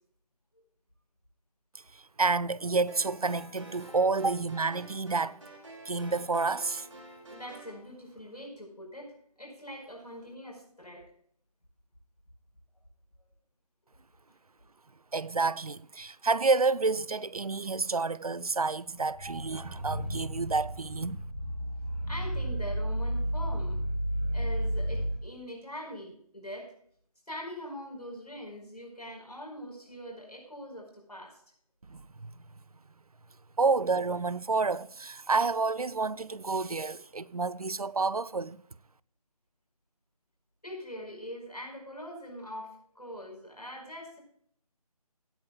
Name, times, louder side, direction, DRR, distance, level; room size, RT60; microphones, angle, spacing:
voice 1, 1.7-5.4 5.9-6.9 15.1-21.2 31.9-32.3 33.6-38.6, right 4 dB, 70° right, 0.6 m, -29 dB
sound 1, 2.9-7.8, right 1 dB, 50° right, 4.2 m, -49 dB
voice 2, 7.3-11.0 22.1-23.8 24.3-26.7 27.3-31.4 40.6-44.2, equal, 85° left, 4.9 m, -43 dB
sound 2, 19.1-25.2, right 1 dB, 20° left, 2.0 m, -32 dB
17.0 x 10.0 x 2.3 m
figure-of-eight pair, 160°, 20 cm